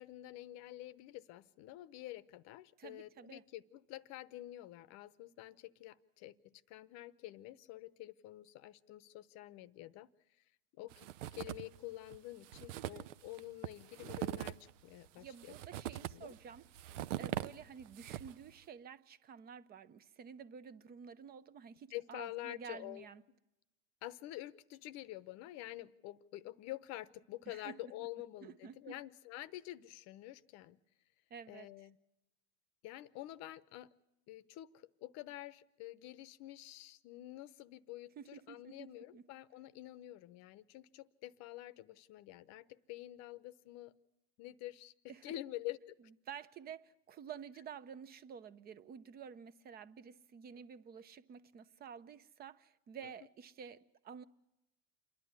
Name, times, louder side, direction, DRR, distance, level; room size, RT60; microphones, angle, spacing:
voice 1, 0.0-10.1 10.8-15.5 16.1-16.3 21.9-23.1 24.0-30.8 31.5-32.0 32.8-33.9 34.3-43.9 44.4-45.9 53.0-53.1, left 16 dB, 45° left, 0.8 m, -48 dB
voice 2, 2.8-3.4 12.7-13.1 15.2-16.7 17.2-23.2 27.5-27.9 28.4-29.0 31.3-31.7 38.2-39.2 45.1-45.3 46.3-54.2, right 7 dB, 25° right, 0.7 m, -51 dB
sound 1, 10.9-11.8 12.1-12.2 12.4-18.5, right 13 dB, 75° right, 0.7 m, -42 dB
28.0 x 11.0 x 9.6 m
supercardioid pair, 125°, 37 cm